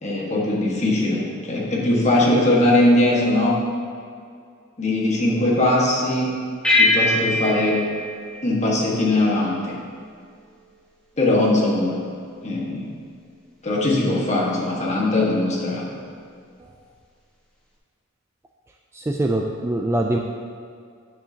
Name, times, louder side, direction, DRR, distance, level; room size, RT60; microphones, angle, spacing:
voice 1, 0.0-3.6 4.8-6.3 6.8-7.8 8.4-9.7 11.2-12.0 12.4-12.9 13.6-15.9, left 1 dB, 35° left, -4 dB, 1.6 m, -20 dB
sound 1, 6.6-9.4, left 2 dB, 5° left, 1.3 m, -22 dB
voice 2, 18.9-20.2, right 1 dB, 10° right, 2 dB, 0.3 m, -23 dB
10.0 x 7.6 x 2.9 m, 2.2 s
head